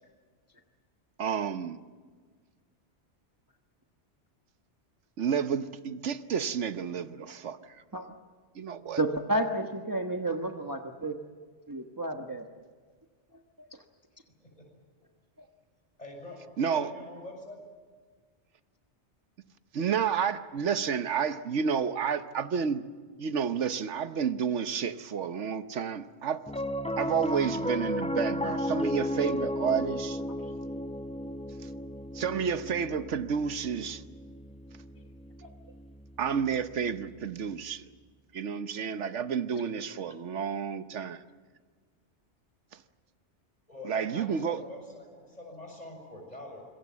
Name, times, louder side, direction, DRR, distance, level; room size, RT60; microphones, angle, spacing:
voice 1, 1.2-1.8 5.2-7.8 8.5-9.0 16.6-16.9 19.7-22.8 23.2-26.4 27.0-30.2 32.1-34.0 36.2-37.9 38.3-41.2 43.8-44.6, right 7 dB, 90° right, 1.3 m, -30 dB
voice 2, 9.0-11.2 11.7-12.4 13.6-13.7 30.4-30.5, right 1 dB, 20° right, 1.2 m, -31 dB
voice 3, 16.0-17.6 43.7-46.7, left 1 dB, 35° left, 6.8 m, -45 dB
Piano, 26.5-37.0, left 1 dB, 10° left, 0.4 m, -34 dB
26.5 x 22.5 x 7.4 m
omnidirectional pair, 1.2 m